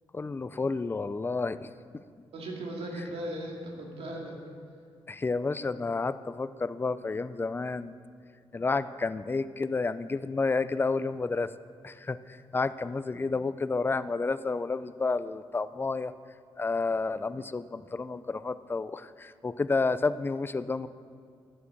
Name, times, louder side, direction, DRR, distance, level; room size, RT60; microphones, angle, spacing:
voice 1, 0.1-1.7 1.9-2.0 5.1-8.0 8.5-11.5 11.8-16.1 16.6-20.9, left 3 dB, 20° left, 14 dB, 0.4 m, -30 dB
voice 2, 2.3-4.4, right 1 dB, 80° right, -1 dB, 2.3 m, -37 dB
9.9 x 8.6 x 7.0 m, 2.2 s
cardioid pair, 100°, 10 cm